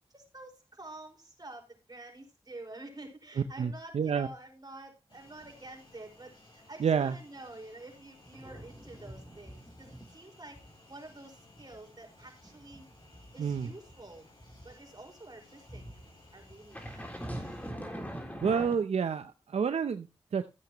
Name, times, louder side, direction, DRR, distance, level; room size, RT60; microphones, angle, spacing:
voice 1, 0.1-10.6 10.9-12.9 13.3-14.3 14.6-17.1, right 2 dB, 40° right, 2 dB, 4.9 m, -49 dB
voice 2, 3.6-4.3 6.8-7.1 13.4-13.7 18.4-20.5, right 6 dB, 85° right, 10 dB, 0.6 m, -29 dB
sound 1, 5.1-17.7, left 2 dB, 50° left, 7.3 m, -59 dB
sound 2, 8.2-10.2 10.5-10.7 11.1-14.7 15.7-18.8, equal, 15° left, 3.6 m, -43 dB
15.0 x 8.4 x 3.0 m, 0.27 s
cardioid pair, 40°, 11 cm